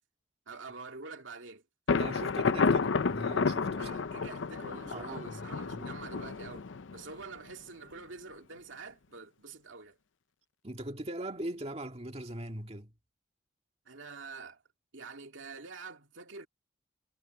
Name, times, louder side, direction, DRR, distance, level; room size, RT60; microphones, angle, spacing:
voice 1, 0.5-1.6 3.8-10.0 13.9-14.6 14.9-16.5, right 4 dB, 90° right, 2.3 m, -46 dB
Thunder, 1.9-7.5, left 4 dB, 85° left, 0.6 m, -31 dB
voice 2, 1.9-4.3 4.6-6.0 10.6-12.9, right 1 dB, 30° right, 2.1 m, -41 dB
head